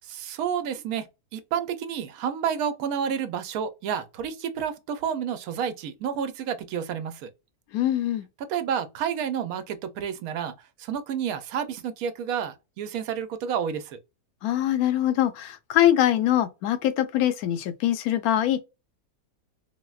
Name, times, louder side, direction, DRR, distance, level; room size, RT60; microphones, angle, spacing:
voice 1, 0.1-7.3 8.5-14.0, right 8 dB, 75° right, 1.0 m, -30 dB
voice 2, 7.7-8.3 14.4-18.6, left 12 dB, 80° left, 1.0 m, -23 dB
4.1 x 2.0 x 2.3 m
omnidirectional pair, 1.6 m